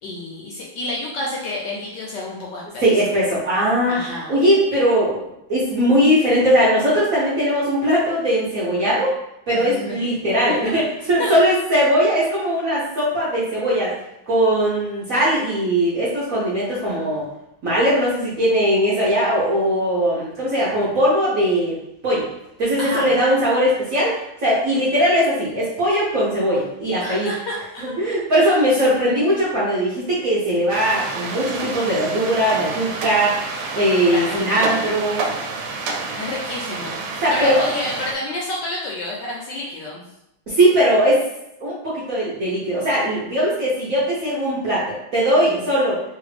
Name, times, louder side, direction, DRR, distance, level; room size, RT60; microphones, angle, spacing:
voice 1, 0.0-3.1 3.9-4.3 9.5-9.9 10.3-10.8 11.2-11.3 22.8-23.2 27.0-27.9 28.4-28.5 34.0-34.7 35.7-40.0 45.4-45.6, left 1 dB, 70° left, -2 dB, 1.1 m, -30 dB
voice 2, 2.8-9.1 9.5-13.9 14.3-17.2 17.6-21.8 22.0-22.3 22.6-27.3 27.8-33.4 33.8-35.2 37.2-37.6 40.5-41.2 41.6-46.0, equal, 60° right, -8 dB, 0.9 m, -19 dB
sound 1, 30.7-38.1, right 3 dB, 90° right, 1.4 m, -29 dB
3.2 x 2.5 x 3.2 m, 0.83 s
omnidirectional pair, 2.3 m